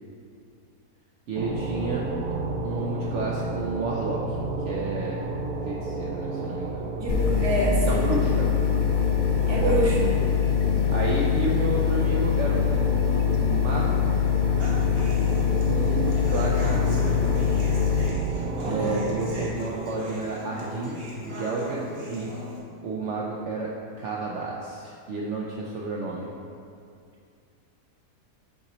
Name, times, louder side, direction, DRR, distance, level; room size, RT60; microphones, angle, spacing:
voice 1, 1.3-2.1 2.6-4.4 4.7-5.3 5.6-6.8 7.8-8.7 9.4-9.9 10.9-14.0 15.6-17.5 18.7-22.3 22.8-23.7 24.0-26.3, right 3 dB, 60° right, -3 dB, 0.8 m, -31 dB
sound 1, 1.3-19.5, right 2 dB, 90° right, 1.2 m, -32 dB
voice 2, 7.0-8.1 9.5-10.2 18.6-19.0, right 1 dB, 20° right, -5 dB, 0.9 m, -26 dB
sound 2, 7.1-18.1, left 8 dB, 65° left, 0.7 m, -23 dB
Human voice / Acoustic guitar, 14.6-22.6, equal, 45° right, 1.1 m, -38 dB
9.6 x 4.1 x 3.0 m, 2.4 s
omnidirectional pair, 1.6 m